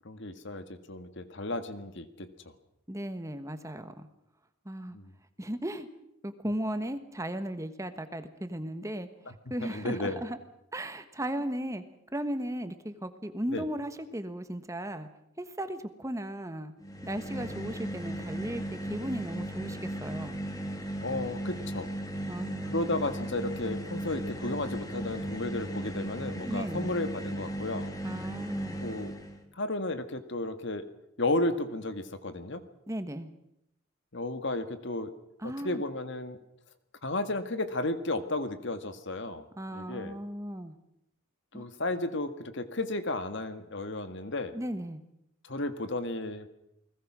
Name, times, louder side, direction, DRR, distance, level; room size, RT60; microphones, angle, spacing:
voice 1, 0.0-2.3 4.9-5.1 9.6-10.2 13.5-13.6 21.0-21.9 22.7-27.9 28.8-29.1 29.5-30.8 31.2-32.6 34.1-35.1 35.4-36.4 37.0-39.4 39.7-40.1 41.5-44.5 45.4-46.5, left 2 dB, 55° left, 9 dB, 1.8 m, -33 dB
voice 2, 2.9-4.1 4.6-5.0 5.4-5.9 6.2-10.4 10.7-11.8 12.1-15.1 15.4-16.7 17.0-20.4 22.3-22.9 26.4-26.9 28.0-28.8 32.9-33.3 35.4-35.8 39.6-40.7 41.5-41.6 44.5-45.0, right 1 dB, 15° right, 9 dB, 1.3 m, -36 dB
sound 1, 16.8-29.4, right 1 dB, 15° left, 2.3 m, -36 dB
29.5 x 20.5 x 6.2 m, 0.80 s
head